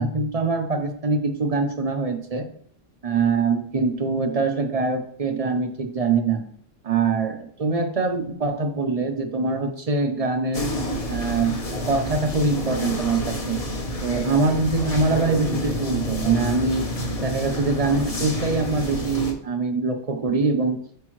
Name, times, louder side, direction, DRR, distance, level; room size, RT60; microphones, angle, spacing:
voice 1, 0.0-2.5 3.0-6.4 6.8-10.7 11.1-11.6 11.9-13.6 14.0-16.9 17.2-20.8, right 4 dB, 35° right, 6 dB, 0.7 m, -23 dB
sound 1, 10.5-19.3, left 1 dB, 30° left, 0.9 m, -29 dB
8.0 x 5.4 x 3.1 m, 0.62 s
omnidirectional pair, 1.3 m